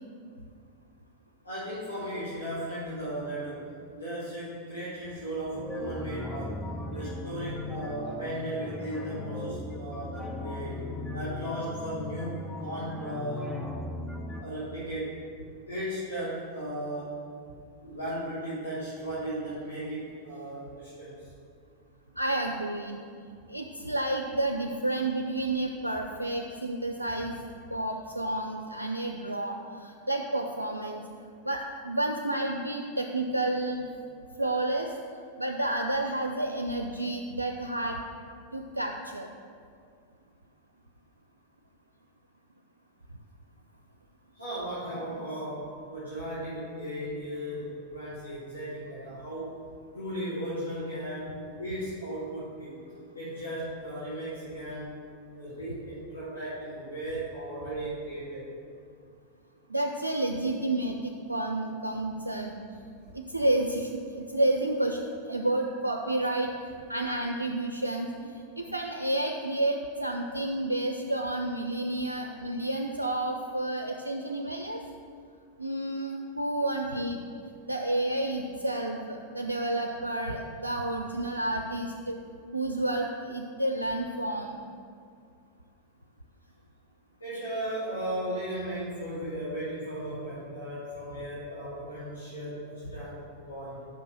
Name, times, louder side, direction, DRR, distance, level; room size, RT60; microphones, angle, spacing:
voice 1, 1.4-3.6 3.9-6.6 6.9-10.8 11.1-13.5 14.4-15.2 15.7-17.2 17.8-21.3 44.3-49.5 49.9-52.7 53.1-54.9 55.3-58.5 87.2-93.9, right 1 dB, 80° left, -10 dB, 1.7 m, -36 dB
sound 1, 5.5-14.4, left 2 dB, 10° left, 0.5 m, -38 dB
voice 2, 22.2-23.0 23.5-27.4 27.7-31.0 31.4-33.9 34.4-34.9 35.4-38.0 38.5-39.3 59.7-62.6 63.1-66.5 66.9-74.8 75.6-77.2 77.7-82.2 82.5-84.6, right 1 dB, 85° right, 3 dB, 0.4 m, -30 dB
6.0 x 5.6 x 5.9 m, 2.3 s
figure-of-eight pair, 90°, 0 cm